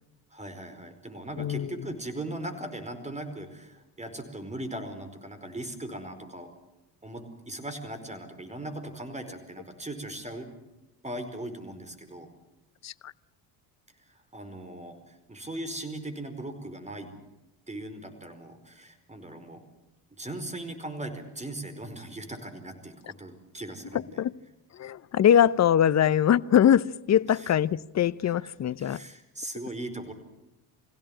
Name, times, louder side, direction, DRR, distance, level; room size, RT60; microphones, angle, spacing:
voice 1, 0.3-6.5 7.0-10.5 11.0-12.3 14.1-17.1 17.7-19.6 20.2-24.2 27.3-27.5 28.2-28.5 28.8-30.1, right 1 dB, 15° right, 4.7 m, -39 dB
voice 2, 1.4-1.7 12.8-13.1 24.2-24.3 24.7-29.0, left 9 dB, 35° left, 0.7 m, -22 dB
23.5 x 16.5 x 9.0 m
hypercardioid pair, 65°, 47 cm